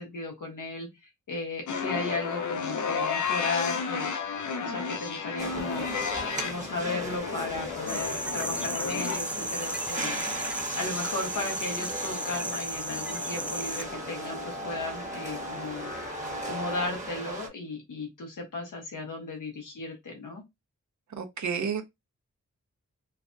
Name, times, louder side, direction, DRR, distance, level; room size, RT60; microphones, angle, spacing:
voice 1, 0.0-4.1 4.6-5.8 6.4-15.9 16.5-20.4, left 3 dB, 90° left, 1.2 m, -35 dB
sound 1, 1.7-16.9, left 5 dB, 70° left, 0.5 m, -34 dB
sound 2, 5.4-17.5, right 2 dB, 25° right, 1.1 m, -39 dB
sound 3, 7.9-13.8, right 1 dB, 5° right, 0.4 m, -34 dB
voice 2, 21.2-21.8, right 6 dB, 70° right, 0.7 m, -30 dB
3.3 x 2.2 x 2.6 m
cardioid pair, 50°, 30 cm